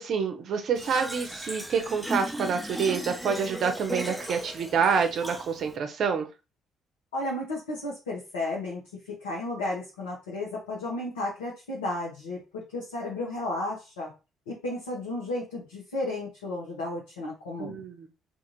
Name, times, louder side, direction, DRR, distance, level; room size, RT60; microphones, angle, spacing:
voice 1, 0.0-6.3 17.6-18.1, right 6 dB, 60° right, 6 dB, 0.6 m, -27 dB
Fill (with liquid), 0.8-5.8, equal, ahead, 0.7 m, -36 dB
voice 2, 7.1-8.8 9.1-14.1 14.5-17.8, left 2 dB, 85° left, -4 dB, 0.8 m, -33 dB
2.5 x 2.4 x 2.9 m, 0.29 s
hypercardioid pair, 50°, 0 cm